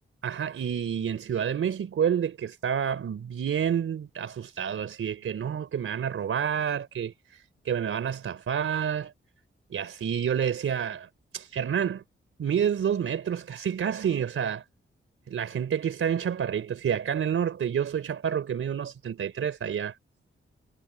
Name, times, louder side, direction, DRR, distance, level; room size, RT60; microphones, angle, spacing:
voice 1, 0.2-9.1 9.7-12.0 12.4-14.6 15.3-20.0, right 8 dB, 90° right, 3.7 m, -29 dB
wide cardioid pair, 125°, 21 cm